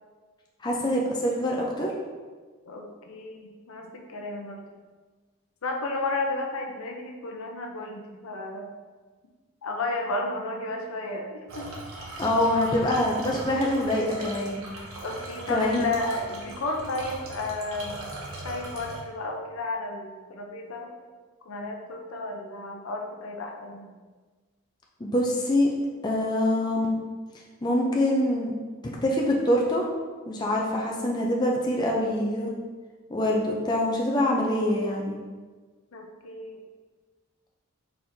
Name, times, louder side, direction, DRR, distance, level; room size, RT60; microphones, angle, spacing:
voice 1, 0.6-1.9 12.2-14.6 15.5-15.9 25.0-25.7 26.0-27.0 27.6-28.5 29.0-29.8 30.3-32.5 33.1-35.2, left 1 dB, 20° left, -2 dB, 0.4 m, -25 dB
voice 2, 2.6-4.7 5.6-8.7 9.6-11.7 15.0-18.0 18.4-20.9 21.5-23.9 35.9-36.6, left 2 dB, 75° left, 2 dB, 0.6 m, -33 dB
sound 1, 11.5-19.0, right 2 dB, 75° right, 0.8 m, -39 dB
4.3 x 4.0 x 2.6 m, 1.4 s
head